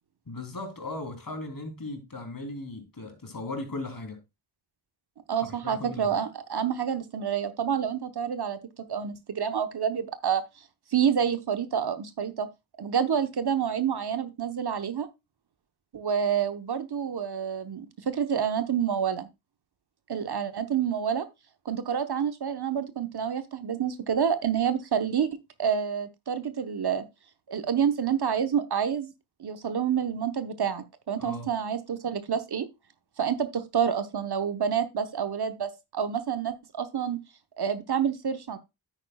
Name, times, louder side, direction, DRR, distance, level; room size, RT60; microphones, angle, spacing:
voice 1, 0.3-4.2 5.6-6.2 31.2-31.5, left 2 dB, 45° left, 3.1 m, -37 dB
voice 2, 5.3-8.6 8.9-10.4 10.9-12.5 12.8-15.1 15.9-19.3 20.1-21.3 21.6-25.3 25.6-27.0 27.5-29.1 29.4-32.7 33.2-37.2 37.6-38.6, right 8 dB, 50° right, 1.0 m, -28 dB
9.8 x 8.6 x 2.3 m
cardioid pair, 45°, 49 cm